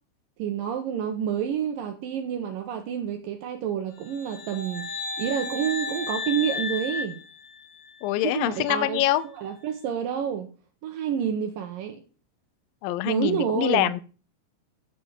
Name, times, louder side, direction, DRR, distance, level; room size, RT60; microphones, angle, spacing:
voice 1, 0.4-4.9 5.2-7.2 8.2-10.5 10.8-12.0 13.1-13.9, right 8 dB, 75° right, 2.2 m, -29 dB
sound 1, 4.1-8.1, left 4 dB, 35° left, 2.8 m, -34 dB
voice 2, 8.0-9.2 12.8-14.0, left 14 dB, 90° left, 2.0 m, -24 dB
10.5 x 5.5 x 7.1 m
omnidirectional pair, 4.9 m